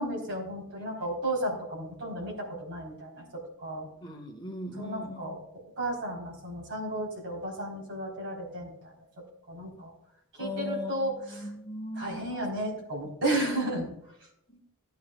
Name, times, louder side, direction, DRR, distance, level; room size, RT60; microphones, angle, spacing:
voice 1, 0.0-3.2 3.6-3.9 4.8-5.4 5.8-8.7 9.5-9.9 10.4-11.4 12.0-13.9, right 1 dB, 60° right, -1 dB, 3.9 m, -33 dB
voice 2, 4.0-5.3 10.4-12.4 14.5-14.6, left 1 dB, 20° left, 0 dB, 1.5 m, -39 dB
16.0 x 9.4 x 2.4 m, 0.80 s
head